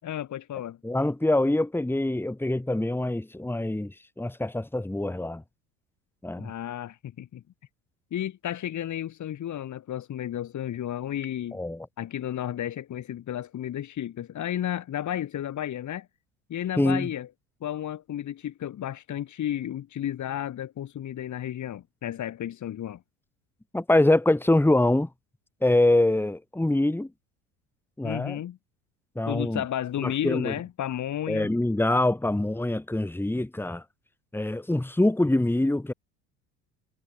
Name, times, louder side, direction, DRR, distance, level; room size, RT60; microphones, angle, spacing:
voice 1, 0.0-0.8 6.4-7.4 8.1-11.6 12.0-16.1 16.5-17.3 17.6-23.0 28.0-28.6 29.3-31.5, left 11 dB, 50° left, 7.1 m, -32 dB
voice 2, 0.8-5.4 6.2-6.5 11.5-11.9 16.8-17.1 23.7-25.1 25.6-27.1 28.0-28.4 29.2-29.6 30.0-30.5 31.3-33.8 34.3-35.9, left 1 dB, 5° left, 2.6 m, -24 dB
hypercardioid pair, 85°, 39 cm